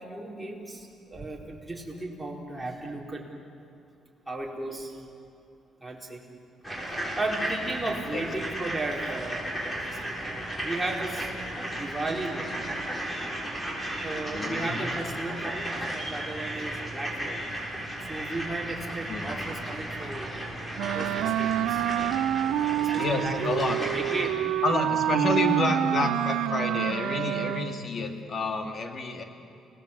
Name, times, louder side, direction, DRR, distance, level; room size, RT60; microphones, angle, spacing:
voice 1, 0.1-3.3 4.3-5.0 5.8-6.2 7.2-11.3 11.7-12.5 14.0-17.5 18.1-20.3 20.9-21.9 22.8-23.4 23.8-24.4 25.1-25.2, right 2 dB, 10° right, -2 dB, 4.5 m, -35 dB
sound 1, 6.6-24.3, right 1 dB, 10° left, 6.6 m, -34 dB
voice 2, 8.1-8.6 14.3-14.9 19.1-19.4 22.9-23.8 24.6-29.2, left 3 dB, 45° left, 5 dB, 2.7 m, -29 dB
Wind instrument woodwind instrument, 20.8-27.9, right 12 dB, 85° right, 0.5 m, -27 dB
29.5 x 18.5 x 8.5 m, 2.5 s
cardioid pair, 90°, 0 cm